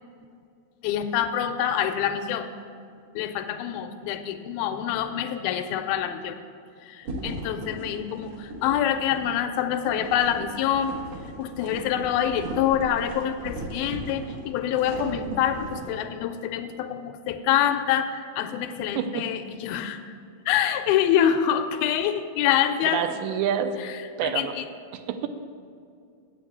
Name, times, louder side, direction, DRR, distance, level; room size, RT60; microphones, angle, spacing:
voice 1, 0.8-2.5 3.2-6.4 6.9-10.9 11.4-20.0 20.5-23.0 23.8-23.9 24.2-24.7, left 10 dB, 80° left, 8 dB, 2.3 m, -26 dB
sound 1, 7.0-16.0, right 2 dB, 65° right, 2.0 m, -38 dB
voice 2, 18.9-19.3 22.8-23.8 24.2-24.5 24.9-25.3, right 9 dB, 85° right, 9 dB, 2.5 m, -28 dB
8.1 x 5.8 x 7.8 m, 2.4 s
omnidirectional pair, 4.4 m